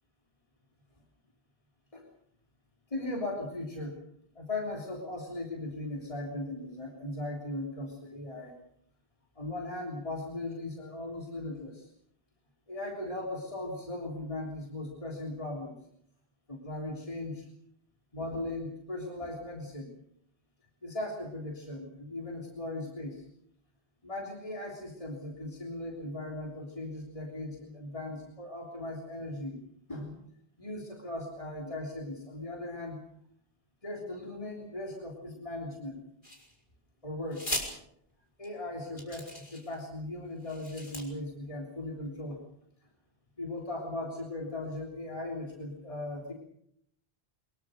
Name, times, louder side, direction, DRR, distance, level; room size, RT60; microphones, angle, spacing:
voice 1, 2.9-4.0 4.4-8.6 9.4-11.9 12.7-15.7 16.5-17.5 18.1-19.9 20.8-23.2 24.0-29.6 29.9-30.2 30.6-33.0 33.8-36.1 37.0-37.5 38.4-42.4 43.4-46.3, left 2 dB, 35° left, -1 dB, 3.6 m, -38 dB
sound 1, 36.2-36.8 37.3-37.7 38.4-38.5 39.0-39.8 40.4-41.0, left 1 dB, 50° left, 5.3 m, -38 dB
24.0 x 22.0 x 6.6 m, 0.72 s
omnidirectional pair, 1.0 m